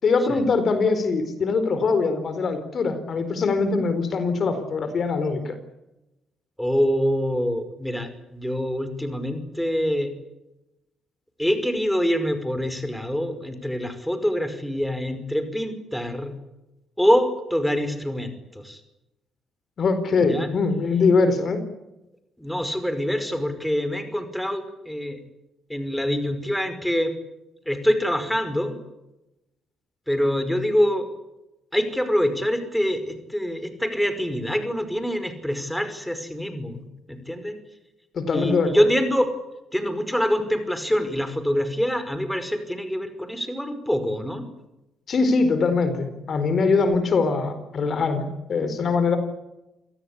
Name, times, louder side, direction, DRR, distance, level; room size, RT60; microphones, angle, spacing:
voice 1, 0.0-5.5 19.8-21.6 38.1-38.9 45.1-49.2, left 4 dB, 50° left, 10 dB, 4.5 m, -22 dB
voice 2, 6.6-10.1 11.4-16.3 17.0-18.8 20.2-20.5 22.4-25.2 25.7-27.1 27.7-28.8 30.1-31.1 31.7-37.6 38.3-39.3 39.7-44.4, equal, 5° left, 9 dB, 5.3 m, -25 dB
28.0 x 18.0 x 9.9 m, 0.94 s
cardioid pair, 90°, 0 cm